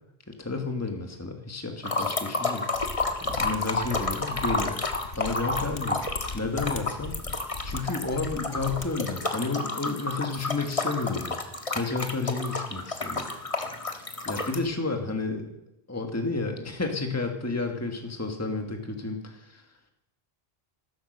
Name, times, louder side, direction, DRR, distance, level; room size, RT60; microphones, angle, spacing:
voice 1, 0.3-2.6 3.2-4.8 5.2-6.0 6.3-7.1 7.6-11.4 11.7-13.3 14.2-15.5 15.9-19.7, left 3 dB, 15° left, 4 dB, 1.6 m, -31 dB
sound 1, 1.8-14.6, left 2 dB, 35° left, 1.6 m, -31 dB
Mechanisms, 2.7-8.9 9.1-9.2, left 3 dB, 65° left, 1.4 m, -38 dB
15.0 x 13.0 x 6.5 m, 0.82 s
omnidirectional pair, 1.0 m